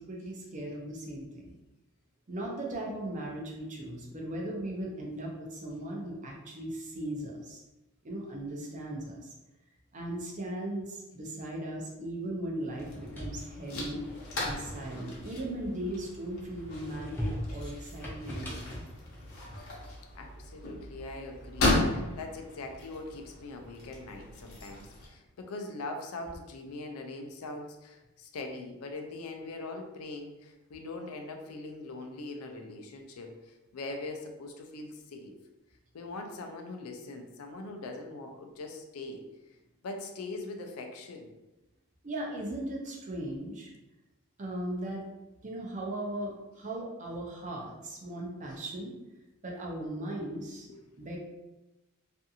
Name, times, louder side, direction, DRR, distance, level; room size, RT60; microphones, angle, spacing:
voice 1, 0.0-1.5 2.3-7.6 8.0-9.3 9.9-14.0 14.4-18.7 42.0-43.7 44.4-45.0 45.4-48.9 49.4-50.7 51.0-51.2, right 1 dB, 35° right, -1 dB, 0.5 m, -38 dB
sound 1, 12.7-25.1, left 2 dB, 70° left, 0.7 m, -36 dB
sound 2, 12.8-16.0 16.5-19.9, equal, 10° left, 0.5 m, -41 dB
voice 2, 20.1-35.4 35.9-39.3 39.8-41.3 50.7-50.9, left 2 dB, 90° left, 3 dB, 0.4 m, -42 dB
2.5 x 2.4 x 2.6 m, 1.0 s
head